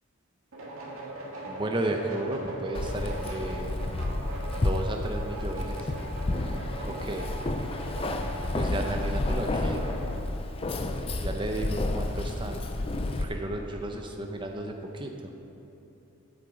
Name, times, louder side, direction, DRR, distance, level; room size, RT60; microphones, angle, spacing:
sound 1, 0.5-10.2, right 2 dB, 75° right, 1.8 m, -40 dB
voice 1, 1.5-3.7 4.5-5.9 6.9-7.3 8.5-9.8 11.2-12.6 13.2-15.1, right 1 dB, 20° right, 3 dB, 0.7 m, -33 dB
Keys jangling, 2.7-13.2, left 2 dB, 25° left, 0.4 m, -31 dB
8.4 x 7.4 x 5.1 m, 3.0 s
head